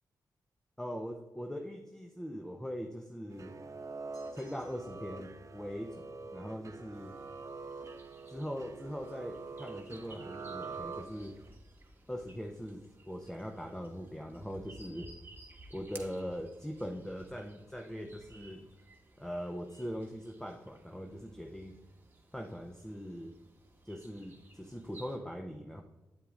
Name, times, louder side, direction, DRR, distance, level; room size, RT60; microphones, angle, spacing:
voice 1, 0.8-3.6 4.3-7.2 8.3-11.4 12.1-15.1 15.7-18.7 19.2-21.8 22.3-23.3 23.8-25.8, equal, 5° left, 3 dB, 0.6 m, -41 dB
sound 1, 3.3-11.5, right 4 dB, 45° right, 0.6 m, -45 dB
sound 2, 4.1-5.1, left 5 dB, 55° left, 1.2 m, -64 dB
sound 3, 6.9-25.2, right 2 dB, 30° right, 1.3 m, -57 dB
8.9 x 8.1 x 2.5 m, 1.2 s
cardioid pair, 60°, 7 cm